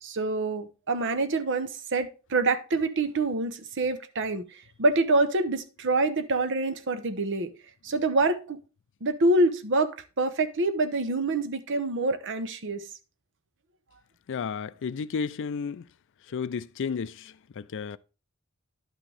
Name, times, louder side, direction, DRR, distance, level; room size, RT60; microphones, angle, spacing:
voice 1, 0.0-7.5 7.8-8.6 9.0-12.8, right 2 dB, 60° right, 0.8 m, -26 dB
voice 2, 14.3-15.8 16.3-18.0, left 6 dB, 60° left, 0.4 m, -32 dB
10.5 x 6.1 x 3.4 m
head